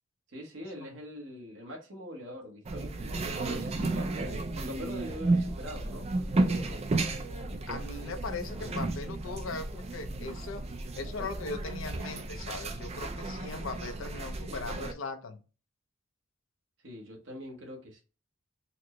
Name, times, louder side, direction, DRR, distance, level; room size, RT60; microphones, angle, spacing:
voice 1, 0.3-6.1 6.4-6.8 16.8-18.0, equal, 70° right, 1.1 m, -43 dB
sound 1, 2.6-14.9, right 2 dB, 30° right, 0.4 m, -33 dB
voice 2, 7.7-10.6 10.9-15.4, left 4 dB, 80° left, 0.6 m, -39 dB
4.2 x 2.1 x 3.0 m
head